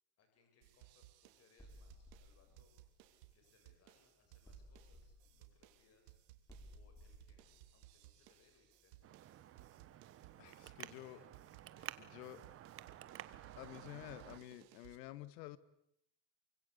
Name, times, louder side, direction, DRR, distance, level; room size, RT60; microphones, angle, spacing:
voice 1, 0.2-2.7 3.3-6.2 6.7-7.4 7.7-13.1, left 4 dB, 30° left, 5 dB, 7.6 m, -73 dB
sound 1, 0.6-15.0, right 16 dB, 75° right, 3.6 m, -63 dB
sound 2, 1.6-3.9 4.4-9.1, equal, 5° left, 5.3 m, -60 dB
Traffic noise roadway noise, 9.0-14.4, right 12 dB, 25° right, 1.2 m, -53 dB
voice 2, 10.8-11.2 12.0-12.4 13.6-15.6, left 15 dB, 80° left, 16 dB, 2.1 m, -50 dB
28.5 x 25.0 x 8.4 m, 0.74 s
cardioid pair, 160°, 49 cm